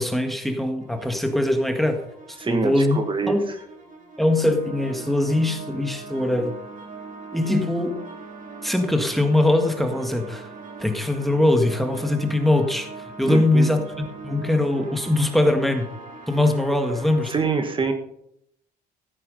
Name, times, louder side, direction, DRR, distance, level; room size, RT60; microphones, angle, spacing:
voice 1, 0.0-2.0 2.3-3.0 3.3-3.5 4.2-6.6 7.3-8.0 8.6-10.5 10.8-12.9 13.2-13.8 14.2-15.9 16.3-17.3, left 1 dB, ahead, 5 dB, 1.8 m, -21 dB
sound 1, 0.8-17.4, right 4 dB, 50° right, 3.1 m, -40 dB
voice 2, 2.4-3.5 13.3-13.7 17.3-17.9, right 4 dB, 30° right, 7 dB, 1.5 m, -25 dB
15.0 x 8.4 x 5.4 m, 0.75 s
cardioid pair, 110°, 17 cm